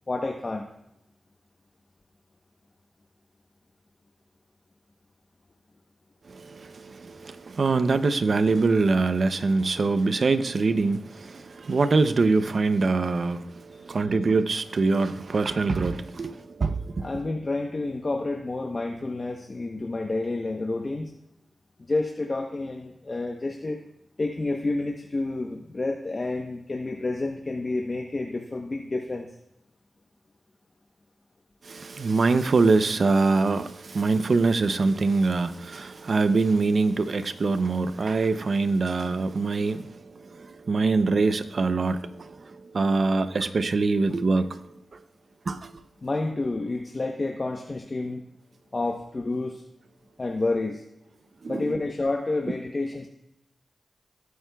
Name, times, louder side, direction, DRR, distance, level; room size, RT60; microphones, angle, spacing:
voice 1, 0.1-0.7 17.0-21.1 21.9-23.8 24.2-29.3 46.0-48.2 48.7-49.6 50.2-50.8 51.5-53.1, left 2 dB, 40° left, 0.9 m, -29 dB
voice 2, 6.3-17.1 31.6-44.6 45.5-45.7 51.4-51.7, right 3 dB, 65° right, 0.6 m, -24 dB
18.0 x 9.4 x 2.3 m
cardioid pair, 60°, 0 cm